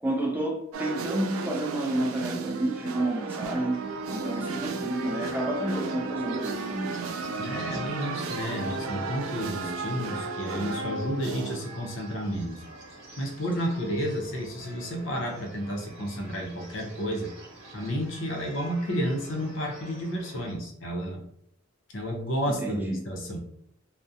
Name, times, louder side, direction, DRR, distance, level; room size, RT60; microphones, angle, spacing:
voice 1, 0.0-3.8 4.1-7.0 22.5-23.0, right 1 dB, 10° right, 0 dB, 0.3 m, -30 dB
sound 1, 0.7-11.6, right 3 dB, 90° right, 0.3 m, -33 dB
sound 2, 3.7-20.5, right 2 dB, 65° right, 1.0 m, -48 dB
voice 2, 7.4-12.6 13.2-17.3 17.7-21.2 21.9-23.4, equal, 65° left, 1 dB, 0.6 m, -31 dB
2.4 x 2.1 x 2.6 m, 0.71 s
head